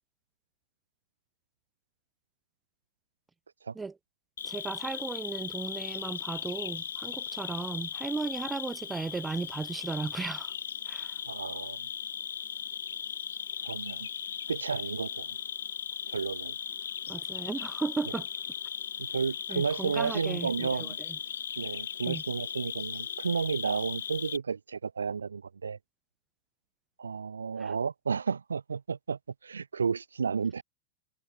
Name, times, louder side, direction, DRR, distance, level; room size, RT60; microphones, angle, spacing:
Cricket, 4.4-24.4, left 8 dB, 65° left, 0.5 m, -37 dB
voice 1, 4.4-10.5 10.9-11.2 17.1-18.3 19.5-21.2 22.0-22.2 27.6-27.7, right 4 dB, 10° right, 0.7 m, -36 dB
voice 2, 11.3-11.9 13.6-14.1 14.5-15.4 16.1-16.6 19.0-21.0 21.6-25.8 27.0-30.6, right 5 dB, 75° right, 0.3 m, -32 dB
figure-of-eight pair, 90°, 0 cm